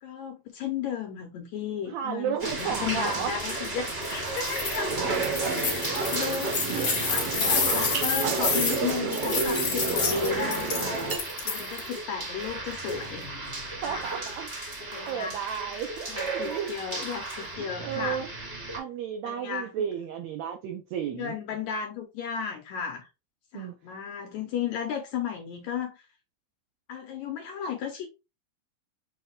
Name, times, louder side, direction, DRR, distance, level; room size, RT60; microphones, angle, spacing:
voice 1, 0.0-5.0 5.6-6.6 7.0-11.2 11.4-13.3 13.8-14.1 14.9-15.5 16.1-18.2 19.2-19.7 21.1-23.1 23.5-26.0 26.9-28.1, left 8 dB, 80° left, 1.7 m, -34 dB
voice 2, 1.9-3.3 11.1-11.2 13.8-14.5 15.1-16.7 17.6-18.3 18.8-21.4 23.5-23.7, right 8 dB, 85° right, 1.5 m, -33 dB
sound 1, 2.4-18.8, right 2 dB, 45° right, 0.8 m, -34 dB
sound 2, 4.3-4.8 5.1-11.9, left 5 dB, 45° left, 1.7 m, -29 dB
sound 3, 4.9-11.2, right 5 dB, 70° right, 1.5 m, -30 dB
6.3 x 2.2 x 3.7 m
omnidirectional pair, 3.8 m